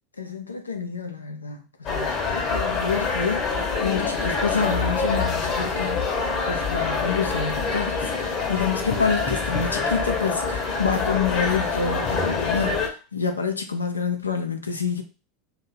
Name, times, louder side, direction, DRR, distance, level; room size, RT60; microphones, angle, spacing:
voice 1, 0.2-6.2 6.5-12.8 13.1-15.0, left 5 dB, 85° left, 0.6 m, -28 dB
sound 1, 1.9-12.9, left 4 dB, 40° left, 1.0 m, -25 dB
2.7 x 2.5 x 4.2 m
figure-of-eight pair, 80°, 0 cm